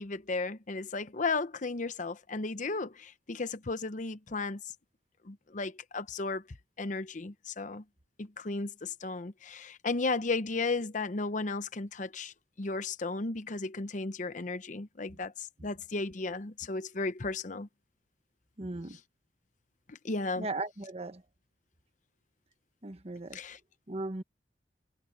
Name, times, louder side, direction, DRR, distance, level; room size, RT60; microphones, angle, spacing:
voice 1, 0.0-4.6 5.2-6.4 6.8-7.8 8.2-17.7 19.9-20.5 23.3-23.6, left 3 dB, 45° left, 0.8 m, -34 dB
voice 2, 18.6-19.0 20.4-21.2 22.8-23.4 23.9-24.2, right 2 dB, 35° right, 1.2 m, -37 dB
head